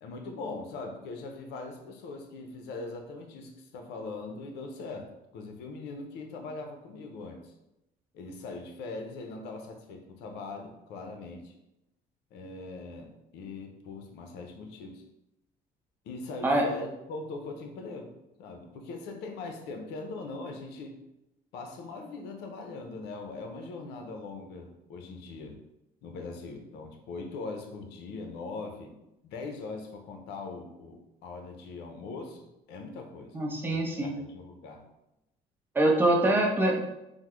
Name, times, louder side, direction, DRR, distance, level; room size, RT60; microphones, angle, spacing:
voice 1, 0.0-7.5 8.1-11.5 12.3-15.0 16.0-18.1 18.4-21.0 21.5-25.6 26.0-28.9 29.2-33.4 33.7-34.8, left 3 dB, 85° left, 4 dB, 0.5 m, -41 dB
voice 2, 33.3-34.1 35.7-36.8, right 1 dB, 10° right, -1 dB, 0.6 m, -24 dB
3.5 x 2.0 x 3.0 m, 0.89 s
cardioid pair, 110°, 17 cm